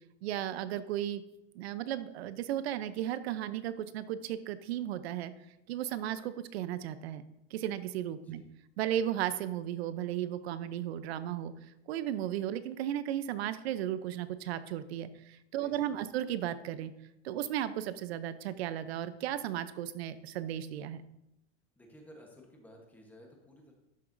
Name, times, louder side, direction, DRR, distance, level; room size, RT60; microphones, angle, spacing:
voice 1, 0.2-1.2 1.5-5.3 5.7-7.2 7.5-8.4 8.8-16.9 17.2-21.0, right 11 dB, 70° right, 13 dB, 0.7 m, -35 dB
voice 2, 15.6-16.1 21.8-23.7, equal, 5° left, 0 dB, 1.1 m, -55 dB
12.0 x 6.8 x 2.6 m, 0.87 s
supercardioid pair, 165°, 33 cm